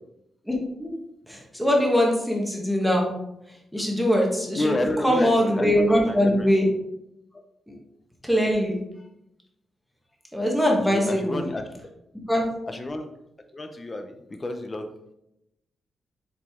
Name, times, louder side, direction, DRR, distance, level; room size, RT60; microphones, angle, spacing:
voice 1, 0.4-0.9 1.3-3.1 3.7-6.7 7.7-7.8 8.2-8.8 10.3-11.4 12.3-12.4, equal, ahead, -1 dB, 1.4 m, -22 dB
voice 2, 4.5-6.5 7.3-7.4 10.8-11.8 12.7-13.1 13.5-14.9, left 1 dB, 20° left, 6 dB, 0.7 m, -30 dB
7.4 x 4.9 x 3.7 m, 0.84 s
wide cardioid pair, 160°, 0 cm